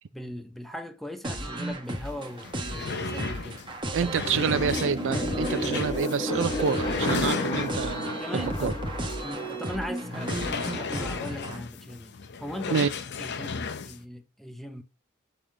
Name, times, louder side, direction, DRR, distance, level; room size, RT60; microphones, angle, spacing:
voice 1, 0.1-3.6 4.0-4.2 4.5-4.6 8.2-8.9 9.2-12.9 13.2-14.8, left 1 dB, ahead, 0.8 m, -39 dB
sound 1, 1.2-11.6, right 1 dB, 25° right, 1.3 m, -34 dB
sound 2, 2.0-2.1 2.4-8.1 8.6-8.7 9.1-9.2 10.1-14.0, left 5 dB, 55° left, 0.7 m, -34 dB
voice 2, 3.9-8.7 12.7-12.9, right 6 dB, 60° right, 0.5 m, -28 dB
sound 3, 4.4-10.9, left 1 dB, 25° left, 1.5 m, -33 dB
6.8 x 3.7 x 6.3 m
head